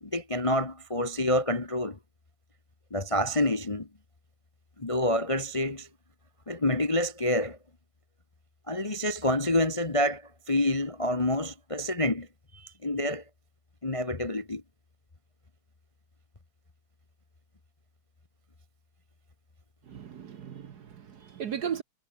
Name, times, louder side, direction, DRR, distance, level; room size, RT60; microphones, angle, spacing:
voice 1, 0.0-2.0 2.9-3.9 4.8-5.9 6.5-7.6 8.7-12.3 12.5-13.2 13.8-14.6, left 1 dB, 20° left, 0.9 m, -28 dB
voice 2, 19.8-21.8, right 8 dB, 55° right, 1.4 m, -36 dB
omnidirectional pair, 2.4 m